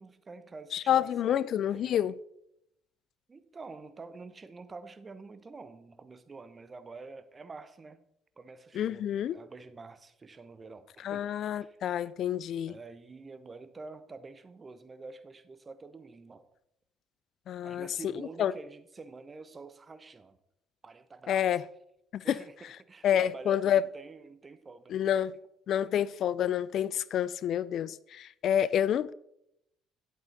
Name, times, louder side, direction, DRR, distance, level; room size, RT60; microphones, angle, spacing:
voice 1, 0.0-2.1 3.3-8.0 8.4-11.3 11.5-11.8 12.7-16.5 17.6-20.4 20.8-21.6 22.2-25.1, right 3 dB, 30° right, 1.1 m, -47 dB
voice 2, 0.7-2.2 8.7-9.4 11.0-12.8 17.5-17.9 18.4-18.5 21.3-21.6 22.1-22.4 23.0-23.8 24.9-25.3 25.7-29.1, left 10 dB, 60° left, 0.3 m, -28 dB
11.0 x 8.2 x 4.1 m
hypercardioid pair, 55°, 0 cm